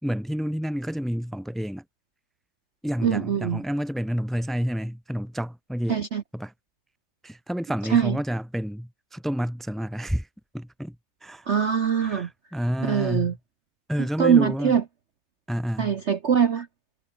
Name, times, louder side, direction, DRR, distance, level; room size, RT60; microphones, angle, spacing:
voice 1, 0.0-1.8 2.8-6.0 6.3-6.5 7.2-10.3 10.5-11.0 11.2-11.5 12.0-13.4 13.9-14.8 15.5-16.0, equal, ahead, 4.0 m, -29 dB
voice 2, 3.0-3.6 5.9-6.2 7.9-8.2 11.5-12.3 12.8-13.3 14.2-14.8 15.8-16.7, right 7 dB, 50° right, 0.9 m, -22 dB
omnidirectional pair, 2.1 m